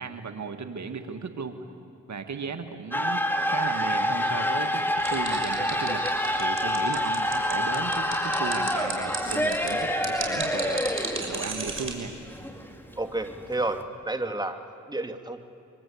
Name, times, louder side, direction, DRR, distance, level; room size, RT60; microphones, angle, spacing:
voice 1, 0.0-1.6 2.1-6.0 6.3-12.1, right 5 dB, 60° right, 7 dB, 1.9 m, -36 dB
sound 1, 2.9-13.8, left 1 dB, 5° left, 2.8 m, -27 dB
sound 2, 5.0-11.9, right 4 dB, 40° right, 6.1 m, -34 dB
voice 2, 13.0-14.6 14.9-15.4, right 2 dB, 15° right, 7 dB, 1.9 m, -31 dB
27.5 x 24.0 x 8.6 m, 2.6 s
supercardioid pair, 45°, 32 cm